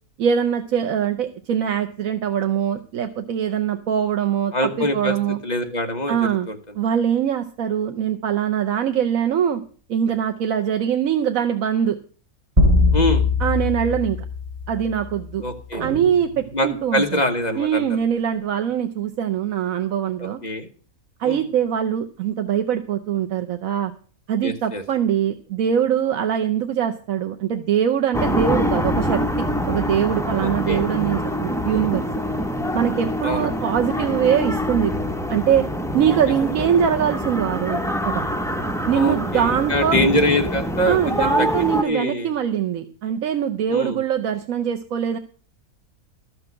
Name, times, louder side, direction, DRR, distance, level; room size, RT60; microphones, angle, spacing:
voice 1, 0.2-5.4 6.1-6.5 6.8-9.6 9.9-12.0 13.4-14.2 14.7-15.4 15.8-17.2 17.6-20.4 21.2-23.9 24.3-32.0 32.7-34.9 35.3-35.7 35.9-38.3 38.9-40.0 40.9-45.2, right 9 dB, 70° right, 6 dB, 1.2 m, -22 dB
voice 2, 4.5-5.2 5.4-6.6 12.9-13.2 15.4-15.8 16.5-17.8 20.2-20.7 21.2-21.4 24.4-24.8 30.4-30.8 33.2-33.6 38.9-41.5 41.8-42.3 43.7-44.0, left 1 dB, 30° left, 4 dB, 1.4 m, -24 dB
sound 1, 12.6-15.1, left 2 dB, 20° right, 2.2 m, -20 dB
sound 2, 15.7-17.2, right 4 dB, 50° right, 2.7 m, -36 dB
sound 3, 28.1-41.8, equal, 5° left, 0.3 m, -25 dB
13.5 x 6.1 x 7.7 m, 0.41 s
omnidirectional pair, 1.5 m